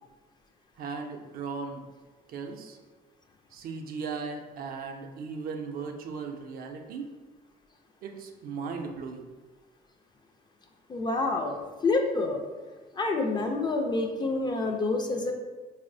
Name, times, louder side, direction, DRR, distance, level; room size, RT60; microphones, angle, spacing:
voice 1, 0.8-1.8 2.3-2.8 3.5-7.1 8.0-9.3, right 5 dB, 60° right, 3 dB, 0.4 m, -37 dB
voice 2, 10.9-12.4 13.0-15.3, left 3 dB, 25° left, 3 dB, 0.4 m, -28 dB
4.1 x 2.0 x 2.6 m, 1.3 s
cardioid pair, 110°, 17 cm